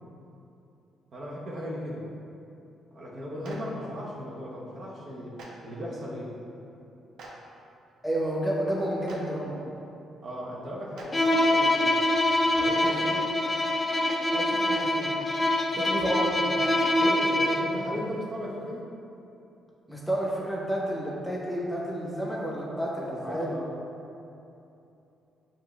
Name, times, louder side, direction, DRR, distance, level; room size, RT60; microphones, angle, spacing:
voice 1, 1.1-2.0 2.9-5.4 5.6-6.3 10.2-12.0 12.5-13.3 15.7-16.1 16.9-18.8 23.0-23.7, equal, 55° right, -5 dB, 0.9 m, -36 dB
Clapping, 3.4-3.6 5.4-5.5 7.2-7.3 9.1-9.2 10.9-11.1 12.8-12.9 14.7-14.8 16.6-16.7, right 3 dB, 80° right, 0.6 m, -44 dB
voice 2, 8.0-9.6 14.3-15.1 15.7-16.5 19.9-23.7, right 1 dB, 5° left, -4 dB, 0.9 m, -31 dB
Bowed string instrument, 11.1-17.8, left 1 dB, 25° left, 0.4 m, -25 dB
7.0 x 2.5 x 2.4 m, 2.8 s
cardioid pair, 90°, 0 cm